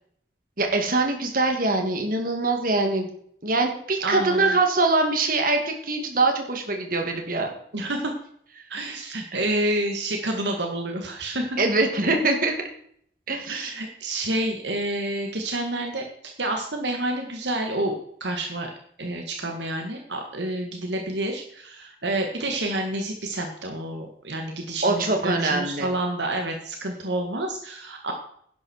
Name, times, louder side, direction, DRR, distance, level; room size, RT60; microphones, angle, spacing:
voice 1, 0.6-3.1 3.4-7.5 11.6-12.5 13.3-13.7 24.8-25.9, right 2 dB, 50° right, 4 dB, 2.5 m, -23 dB
voice 2, 4.0-4.6 7.7-8.1 8.7-11.6 13.5-16.1 16.4-18.7 19.0-28.1, right 1 dB, 70° right, 3 dB, 1.8 m, -29 dB
11.0 x 11.0 x 4.5 m, 0.64 s
head